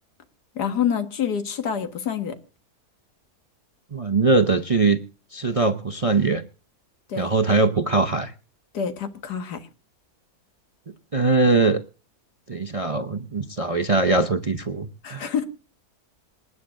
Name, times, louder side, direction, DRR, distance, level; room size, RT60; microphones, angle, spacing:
voice 1, 0.6-2.4 7.1-7.3 8.7-9.7 15.0-15.5, left 8 dB, 90° left, 2.0 m, -27 dB
voice 2, 3.9-5.0 5.3-6.4 7.2-8.3 11.1-11.8 12.5-15.3, right 3 dB, 35° right, 0.5 m, -21 dB
27.0 x 9.5 x 2.5 m
omnidirectional pair, 1.7 m